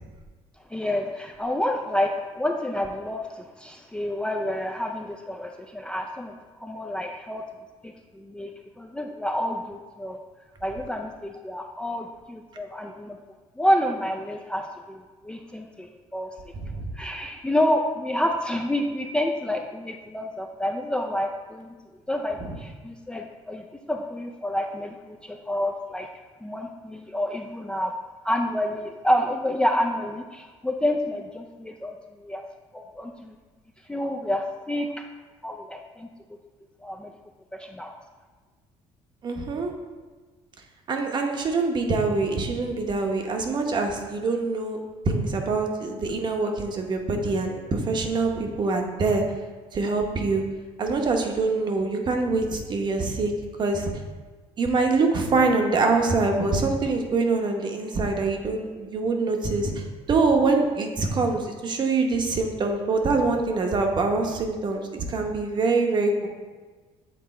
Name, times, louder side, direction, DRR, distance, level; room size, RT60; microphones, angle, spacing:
voice 1, 0.7-7.4 7.8-8.5 8.8-10.2 10.6-13.2 13.6-16.5 16.9-21.7 22.1-26.1 26.4-27.9 28.2-32.4 32.7-33.3 33.9-35.1 35.4-36.1 36.8-37.1 37.5-37.9, left 1 dB, 10° left, 2 dB, 0.4 m, -28 dB
voice 2, 16.6-16.9 22.4-22.5 39.2-39.7 40.9-44.8 45.1-49.2 49.7-50.4 50.8-53.3 53.6-53.9 54.6-66.3, right 3 dB, 40° right, 3 dB, 0.9 m, -24 dB
7.8 x 3.6 x 4.2 m, 1.3 s
cardioid pair, 115°, 12 cm